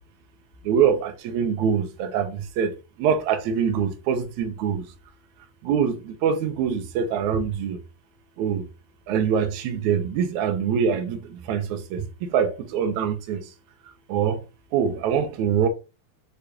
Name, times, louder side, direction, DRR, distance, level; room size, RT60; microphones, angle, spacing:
voice 1, 0.6-2.7 3.0-4.9 5.6-7.8 8.4-8.7 9.1-13.4 14.1-14.4 14.7-15.7, right 7 dB, 65° right, 2.1 m, -24 dB
7.0 x 2.9 x 5.0 m
omnidirectional pair, 4.1 m